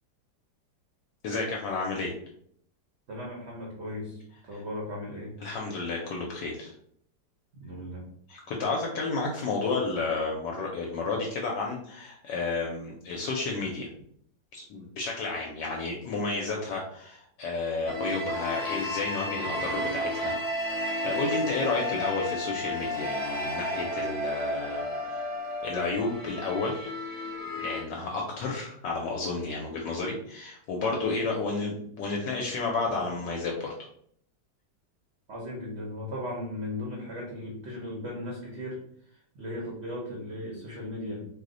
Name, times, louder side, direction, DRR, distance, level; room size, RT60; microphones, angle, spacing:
voice 1, 1.2-2.1 4.5-4.6 5.4-6.7 8.3-13.9 14.5-20.3 20.7-24.8 25.6-26.9 27.6-33.7, left 3 dB, 75° left, 0 dB, 1.2 m, -31 dB
voice 2, 3.1-5.4 7.5-8.1 35.3-41.3, left 1 dB, 60° right, -3 dB, 0.7 m, -37 dB
sound 1, 17.9-27.8, equal, 10° right, 0.5 m, -32 dB
3.0 x 2.0 x 3.7 m, 0.65 s
omnidirectional pair, 2.0 m